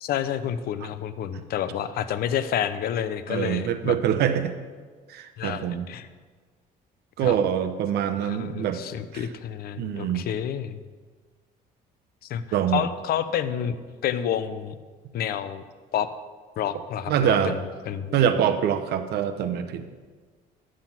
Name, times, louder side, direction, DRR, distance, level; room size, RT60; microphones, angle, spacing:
voice 1, 0.0-4.0 5.4-6.1 7.2-7.4 8.2-10.8 12.2-12.4 12.7-13.8 14.0-14.7 15.1-15.6 15.9-16.1 16.6-17.6 17.8-18.2, left 9 dB, 65° left, 12 dB, 0.7 m, -29 dB
voice 2, 3.3-4.5 5.1-5.9 7.2-8.8 9.1-9.2 9.8-10.3 12.5-12.8 17.1-17.5 18.1-19.9, right 9 dB, 75° right, 9 dB, 0.9 m, -24 dB
11.0 x 7.6 x 5.9 m, 1.5 s
cardioid pair, 110°, 17 cm